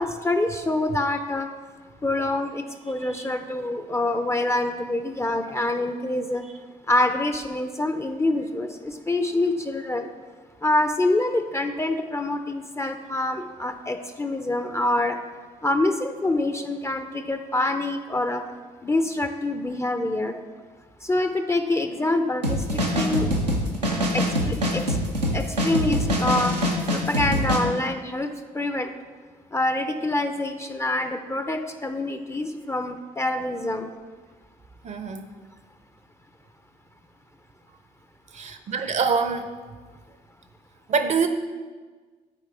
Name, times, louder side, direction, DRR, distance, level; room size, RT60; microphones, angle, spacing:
voice 1, 0.0-1.5 2.0-6.4 6.9-10.1 10.6-15.2 15.6-18.4 18.8-20.4 21.0-23.3 24.1-25.0 25.3-26.6 26.9-28.9 29.5-33.9, left 2 dB, 15° left, 7 dB, 0.5 m, -26 dB
sound 1, 22.4-27.6, equal, 90° right, 0.7 m, -24 dB
voice 2, 34.8-35.3 38.3-39.5 40.9-41.3, right 5 dB, 35° right, 8 dB, 0.7 m, -25 dB
12.0 x 4.7 x 3.4 m, 1.4 s
figure-of-eight pair, 50°, 20 cm